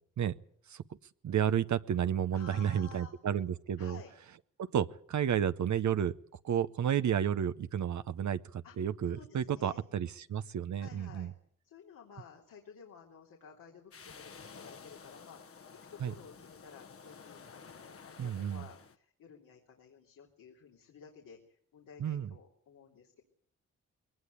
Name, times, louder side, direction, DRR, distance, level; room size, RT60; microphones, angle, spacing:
voice 1, 1.2-4.0 4.6-6.1 6.4-11.3 16.0-16.1 18.2-18.6 22.0-22.3, right 9 dB, 65° right, 12 dB, 0.9 m, -31 dB
voice 2, 2.3-3.1 3.8-4.1 8.6-8.7 9.1-9.8 10.7-11.3 11.6-15.6 15.9-23.2, left 7 dB, 90° left, -2 dB, 3.3 m, -54 dB
sound 1, 13.9-19.0, left 5 dB, 45° left, 1.2 m, -52 dB
21.0 x 18.5 x 8.2 m, 0.63 s
cardioid pair, 60°, 32 cm